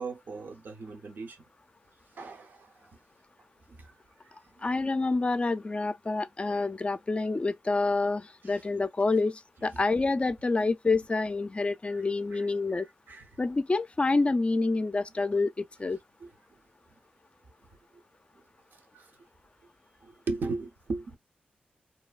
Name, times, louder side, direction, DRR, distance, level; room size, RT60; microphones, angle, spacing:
voice 1, 0.0-1.4 2.1-2.9 3.7-3.9 4.2-4.3 8.5-8.6 11.9-12.0 12.3-12.4 13.1-13.3 16.2-16.3 17.9-18.0 18.9-19.1 20.0-21.2, right 3 dB, 70° right, 0.7 m, -37 dB
voice 2, 4.6-12.9 13.4-16.0, left 3 dB, 35° left, 0.4 m, -27 dB
2.7 x 2.2 x 2.3 m
cardioid pair, 45°, 4 cm